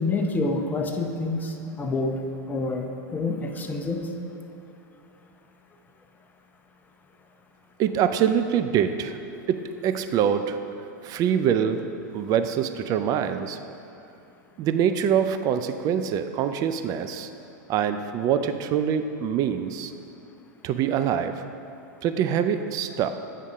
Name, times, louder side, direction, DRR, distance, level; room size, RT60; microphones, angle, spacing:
voice 1, 0.0-2.2 2.5-4.1, left 3 dB, 15° left, 3 dB, 0.7 m, -27 dB
voice 2, 7.8-9.2 9.5-10.6 11.0-11.8 12.1-13.6 14.6-17.3 17.7-19.9 20.6-21.5 22.0-23.1, right 8 dB, 35° right, 9 dB, 0.4 m, -24 dB
8.4 x 3.7 x 5.3 m, 2.7 s
hypercardioid pair, 110°, 10 cm